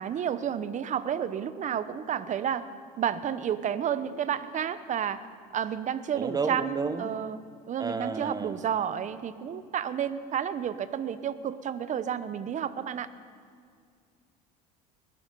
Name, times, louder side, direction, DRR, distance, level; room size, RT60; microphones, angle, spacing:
voice 1, 0.0-2.7 3.0-5.2 5.5-7.4 7.7-13.1, right 9 dB, 40° right, 14 dB, 0.9 m, -31 dB
voice 2, 6.1-7.1 7.8-8.6, right 4 dB, 20° right, 11 dB, 1.1 m, -32 dB
21.0 x 12.0 x 5.4 m, 2.2 s
supercardioid pair, 100°, 20 cm